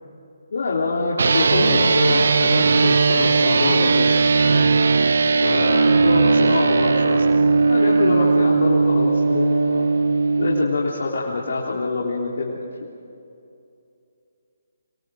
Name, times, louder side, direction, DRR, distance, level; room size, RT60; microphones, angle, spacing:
voice 1, 0.5-4.2 4.4-4.6 5.4-7.3 7.7-9.9 10.4-12.6, left 3 dB, 70° left, -4 dB, 3.7 m, -25 dB
sound 1, 1.2-10.6, right 4 dB, 70° right, 0.8 m, -18 dB
26.0 x 22.5 x 6.5 m, 2.6 s
hypercardioid pair, 165°, 0 cm